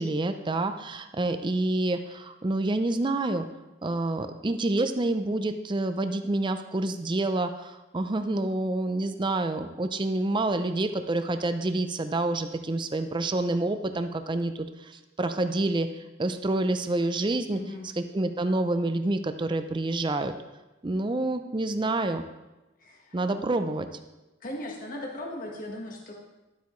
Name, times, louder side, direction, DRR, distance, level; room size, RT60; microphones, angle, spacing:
voice 1, 0.0-3.5 3.8-17.6 18.0-20.3 20.8-22.2 23.1-23.9, right 2 dB, 25° right, 8 dB, 0.5 m, -28 dB
voice 2, 17.5-17.9 22.8-23.4 24.4-26.1, left 1 dB, 45° left, 0 dB, 1.4 m, -38 dB
12.0 x 8.1 x 3.1 m, 1.0 s
head